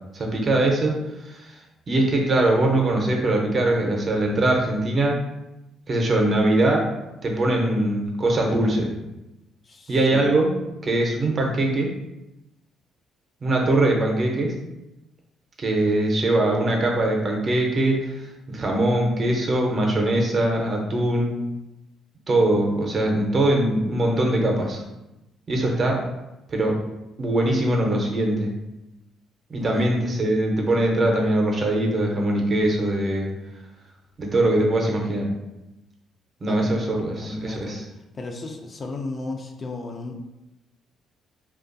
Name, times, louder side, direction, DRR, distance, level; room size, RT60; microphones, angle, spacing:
voice 1, 0.1-1.6 1.9-5.1 5.9-6.8 7.2-8.9 9.9-10.5 10.8-11.9 13.4-14.5 15.6-21.3 22.3-24.8 25.5-26.0 26.5-26.8 27.2-28.5 29.5-33.3 34.2-35.3 36.4-37.8, right 1 dB, 40° right, 0 dB, 0.6 m, -22 dB
voice 2, 9.6-10.3 29.6-29.9 36.5-36.8 37.2-37.8 38.1-40.2, left 2 dB, 40° left, 3 dB, 0.3 m, -34 dB
2.5 x 2.2 x 2.5 m, 0.95 s
supercardioid pair, 80°, 0 cm